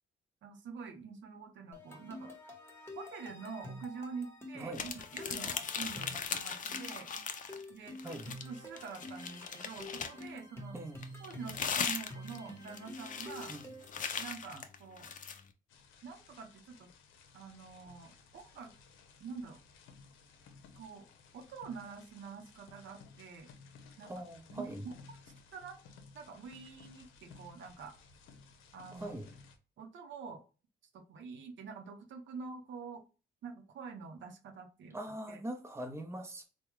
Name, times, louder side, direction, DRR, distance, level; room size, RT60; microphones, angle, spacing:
voice 1, 0.4-2.3 2.9-7.1 7.7-10.7 11.2-13.5 14.2-15.1 16.0-16.9 17.3-18.7 19.2-19.6 20.8-21.1 21.3-23.5 24.0-24.2 24.5-25.2 25.5-25.8 26.1-28.0 28.7-29.1 29.8-30.4 30.9-33.0 33.4-35.4, right 5 dB, 70° right, 0.7 m, -46 dB
sound 1, 1.7-14.0, left 1 dB, 10° left, 1.1 m, -49 dB
sound 2, 4.7-7.6 8.0-10.3 11.0-15.4, left 6 dB, 40° left, 0.5 m, -39 dB
sound 3, 15.7-29.6, left 4 dB, 90° left, 0.6 m, -58 dB
voice 2, 24.0-24.8 28.9-29.3 34.9-36.4, right 1 dB, 15° right, 0.8 m, -42 dB
3.5 x 2.2 x 3.0 m
cardioid pair, 90°, 20 cm